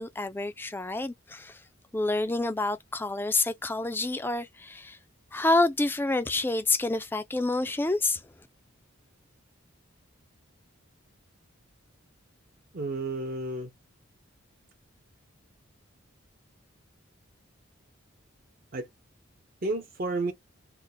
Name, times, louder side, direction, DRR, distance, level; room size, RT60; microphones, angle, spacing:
voice 1, 0.0-1.6 1.9-5.0 5.3-8.2, left 2 dB, 10° left, 0.3 m, -28 dB
voice 2, 12.7-13.7 18.7-18.9 19.6-20.3, right 2 dB, 45° right, 0.6 m, -31 dB
3.3 x 2.1 x 3.9 m
head